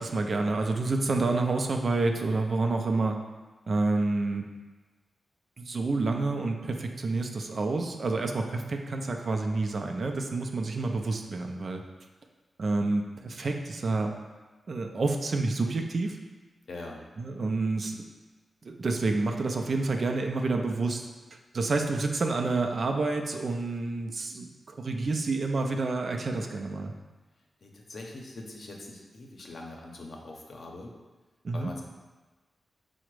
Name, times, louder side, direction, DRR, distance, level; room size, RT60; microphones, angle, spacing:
voice 1, 0.0-3.2 3.7-4.4 5.6-11.8 12.6-14.1 14.7-16.2 17.2-18.1 18.6-21.0 21.5-26.9 31.4-31.7, right 3 dB, 55° right, 3 dB, 0.4 m, -28 dB
voice 2, 16.7-17.1 27.6-30.9 31.5-31.8, left 2 dB, 65° left, 0 dB, 0.7 m, -42 dB
4.8 x 2.1 x 4.6 m, 1.2 s
cardioid pair, 80°, 0 cm